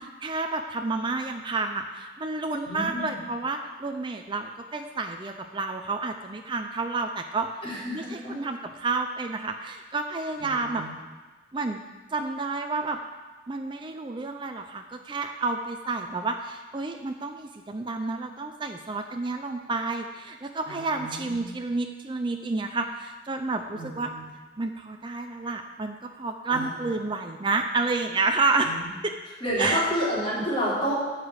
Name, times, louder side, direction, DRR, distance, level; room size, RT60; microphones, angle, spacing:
voice 1, 0.2-7.6 7.9-10.8 11.5-11.8 12.1-13.0 13.5-24.1 24.6-28.7 29.0-29.1 29.6-29.8, right 3 dB, 25° right, 5 dB, 0.5 m, -30 dB
voice 2, 2.6-3.2 7.6-8.3 10.4-10.9 20.7-21.4 23.7-24.2 26.5-26.7 28.6-28.9 29.4-30.9, equal, 30° left, -8 dB, 3.8 m, -30 dB
12.5 x 5.0 x 8.1 m, 1.3 s
head